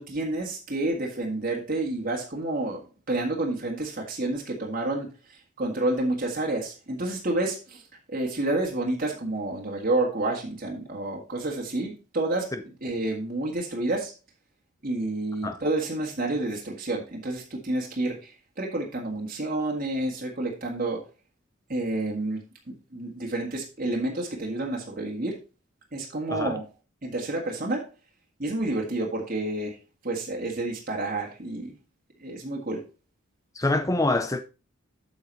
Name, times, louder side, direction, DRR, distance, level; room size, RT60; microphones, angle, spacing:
voice 1, 0.0-2.8 3.1-5.1 5.6-7.8 8.1-12.5 12.8-14.1 14.8-18.3 18.6-21.0 21.7-22.4 22.9-25.4 25.9-26.6 27.0-27.9 28.4-29.8 30.0-31.7 32.2-32.8, right 2 dB, 45° right, 1.8 m, -29 dB
voice 2, 33.6-34.4, left 2 dB, 15° left, 0.5 m, -25 dB
7.9 x 7.1 x 4.1 m
head